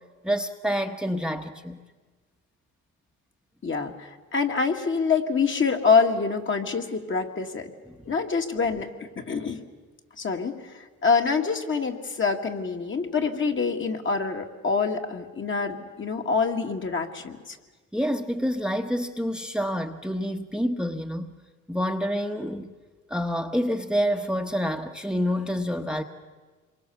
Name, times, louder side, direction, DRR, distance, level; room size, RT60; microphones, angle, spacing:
voice 1, 0.2-1.8 17.9-21.3 21.7-22.7 23.1-26.0, equal, 5° right, 6 dB, 1.1 m, -27 dB
voice 2, 3.6-7.7 8.1-9.6 10.2-17.6, left 5 dB, 40° left, 4 dB, 2.2 m, -26 dB
26.5 x 23.0 x 7.1 m, 1.3 s
cardioid pair, 90°, 30 cm